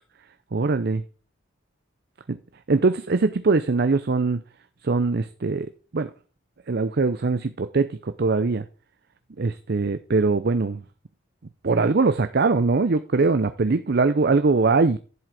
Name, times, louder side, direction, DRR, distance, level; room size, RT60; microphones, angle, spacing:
voice 1, 0.5-1.0 2.3-2.4 2.7-4.4 4.8-6.1 6.7-8.7 9.4-10.8 11.6-15.0, right 3 dB, 50° right, 0.6 m, -22 dB
11.0 x 7.7 x 4.8 m
head